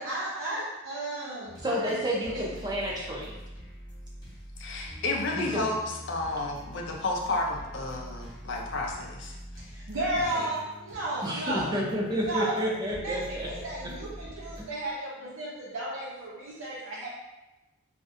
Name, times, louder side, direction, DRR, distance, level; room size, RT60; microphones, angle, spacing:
voice 1, 0.0-2.4 9.7-12.7 13.0-17.1, right 1 dB, 75° right, -7 dB, 0.7 m, -34 dB
sound 1, 1.4-14.6, equal, 20° left, 0.9 m, -45 dB
voice 2, 1.6-3.3 5.3-5.7 11.2-13.5 14.6-14.7, equal, 20° right, -3 dB, 0.6 m, -30 dB
voice 3, 4.6-9.3 10.2-10.5, left 2 dB, 55° left, 0 dB, 0.5 m, -31 dB
3.6 x 2.5 x 2.6 m, 1.0 s
head